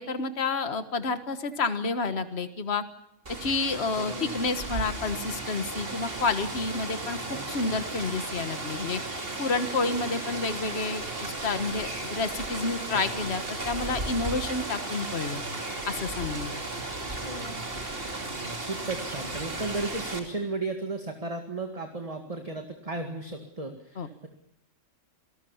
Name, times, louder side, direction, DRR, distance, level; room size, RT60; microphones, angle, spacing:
voice 1, 0.0-2.8 3.4-9.0 9.4-15.4 15.8-16.6 24.0-24.1, left 3 dB, 55° left, 10 dB, 1.7 m, -30 dB
Rain, 3.3-20.2, right 2 dB, 45° right, 3.1 m, -35 dB
voice 2, 3.9-4.4 7.3-7.8 12.9-13.2 17.2-17.6 18.3-24.3, right 3 dB, 30° right, 4 dB, 2.2 m, -35 dB
27.5 x 19.0 x 7.2 m, 0.83 s
omnidirectional pair, 1.3 m